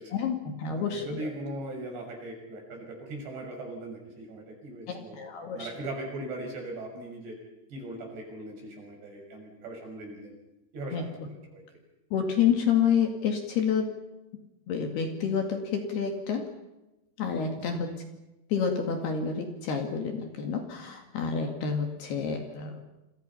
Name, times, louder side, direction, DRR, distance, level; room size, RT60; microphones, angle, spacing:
voice 1, 0.1-1.2 4.9-5.7 10.9-11.1 12.1-13.9 14.7-16.5 17.2-18.0 18.5-22.8, left 7 dB, 60° left, 4 dB, 3.8 m, -29 dB
voice 2, 0.7-5.2 5.4-7.4 7.7-10.3 10.7-11.6 17.6-17.8, right 2 dB, 60° right, 2 dB, 8.5 m, -39 dB
27.5 x 27.0 x 5.8 m, 0.97 s
omnidirectional pair, 5.5 m